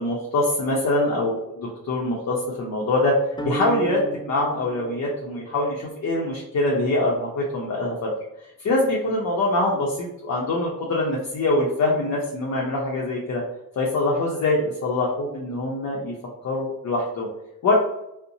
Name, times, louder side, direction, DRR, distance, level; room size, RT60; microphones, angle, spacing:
voice 1, 0.0-3.1 3.4-4.0 4.3-8.1 8.6-13.4 13.8-16.1 16.4-17.3 17.6-17.7, left 2 dB, 55° left, -3 dB, 0.7 m, -24 dB
sound 1, 3.4-5.7, right 4 dB, 15° left, 0.3 m, -34 dB
2.5 x 2.1 x 2.7 m, 0.84 s
cardioid pair, 65°, 34 cm